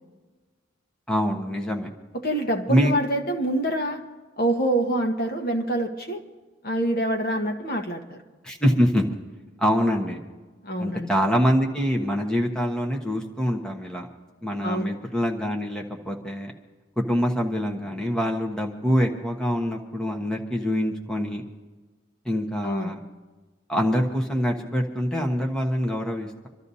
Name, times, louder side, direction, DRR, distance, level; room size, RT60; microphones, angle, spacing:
voice 1, 1.1-1.9 2.7-2.9 8.4-9.0 9.6-10.2 10.8-14.1 14.4-16.5 17.0-21.4 22.2-23.0 23.7-26.5, equal, 5° left, 0 dB, 1.1 m, -25 dB
voice 2, 2.2-4.0 4.4-6.2 6.6-8.2 10.6-11.1 14.6-14.9 22.6-22.9, right 1 dB, 45° left, 3 dB, 1.2 m, -26 dB
27.0 x 13.0 x 2.8 m, 1.3 s
head